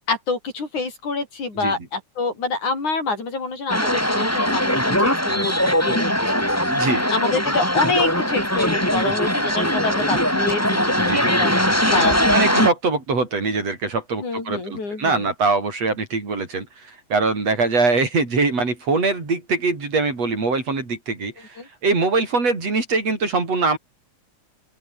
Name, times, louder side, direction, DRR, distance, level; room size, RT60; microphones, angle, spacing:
voice 1, 0.1-6.6 7.1-11.5 11.9-12.4 14.2-15.3 21.6-21.7, left 3 dB, 75° left, 8.3 m, -27 dB
sound 1, 3.7-12.7, equal, 5° left, 6.3 m, -20 dB
voice 2, 6.7-7.0 11.0-11.3 12.3-23.8, right 3 dB, 55° right, 6.7 m, -23 dB
open air
omnidirectional pair, 3.5 m